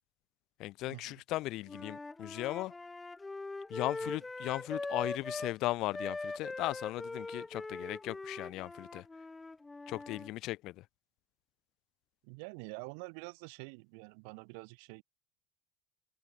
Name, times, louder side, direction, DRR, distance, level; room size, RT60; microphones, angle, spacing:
voice 1, 0.6-2.7 3.7-9.1 9.9-10.8, left 17 dB, 65° left, 0.5 m, -37 dB
Wind instrument woodwind instrument, 1.7-5.6 5.9-10.3, left 3 dB, 15° left, 1.4 m, -42 dB
voice 2, 12.2-15.0, right 39 dB, 75° right, 2.0 m, -47 dB
supercardioid pair, 90°, 0 cm